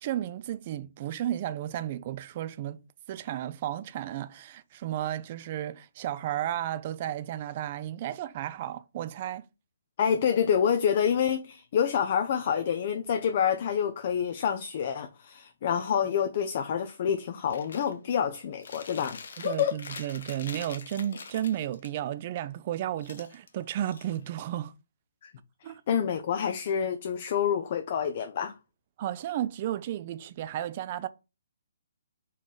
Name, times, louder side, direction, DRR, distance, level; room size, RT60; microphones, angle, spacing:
voice 1, 0.0-2.8 3.1-9.4 19.4-24.7 25.6-25.8 29.0-31.1, right 12 dB, 40° right, 0.4 m, -33 dB
voice 2, 10.0-19.8 25.2-25.3 25.9-28.5, left 8 dB, 45° left, 0.5 m, -27 dB
Chewing mastication, 17.5-17.9 18.3-21.9 23.0-24.5, left 5 dB, 65° left, 0.9 m, -45 dB
4.1 x 3.1 x 3.8 m
hypercardioid pair, 145°, 0 cm